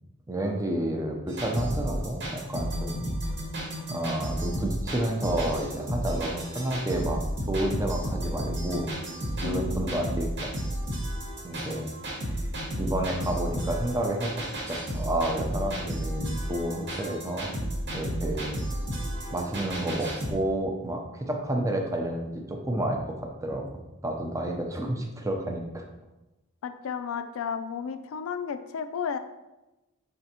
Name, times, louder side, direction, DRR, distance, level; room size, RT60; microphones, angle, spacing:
voice 1, 0.3-3.1 3.9-7.2 7.5-8.9 9.4-10.5 11.4-11.9 12.3-12.5 12.8-14.4 14.7-17.5 17.9-18.6 19.3-23.6 24.0-25.8, right 1 dB, 15° right, 2 dB, 0.5 m, -30 dB
sound 1, 1.3-20.3, equal, 60° right, 1.0 m, -32 dB
voice 2, 9.4-10.2 26.6-29.2, left 6 dB, 70° left, 9 dB, 0.4 m, -33 dB
5.0 x 3.4 x 2.8 m, 1.0 s
head